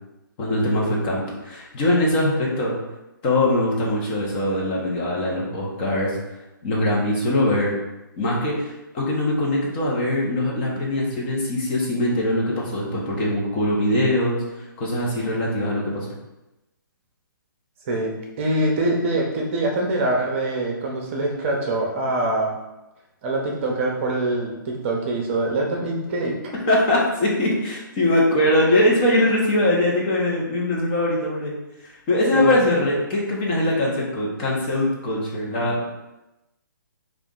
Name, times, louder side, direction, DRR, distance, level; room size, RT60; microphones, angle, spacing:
voice 1, 0.4-2.8 3.2-6.2 6.6-7.7 8.2-16.1 26.7-31.5 31.8-35.9, left 1 dB, 30° left, -3 dB, 0.9 m, -22 dB
voice 2, 18.4-22.5 23.2-26.4 32.3-32.6, right 2 dB, 35° right, -1 dB, 0.7 m, -24 dB
3.5 x 2.5 x 3.7 m, 0.97 s
hypercardioid pair, 145°, 11 cm